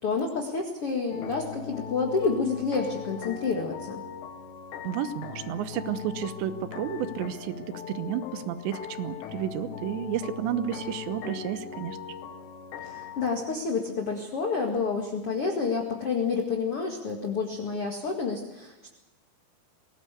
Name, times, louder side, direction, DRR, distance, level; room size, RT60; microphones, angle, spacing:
voice 1, 0.0-4.0 12.8-18.9, left 4 dB, 45° left, 1 dB, 2.0 m, -29 dB
sound 1, 1.1-13.3, left 8 dB, 75° left, 3.8 m, -40 dB
voice 2, 4.8-12.0, right 9 dB, 80° right, 13 dB, 3.3 m, -32 dB
22.5 x 18.0 x 8.3 m, 0.95 s
omnidirectional pair, 5.2 m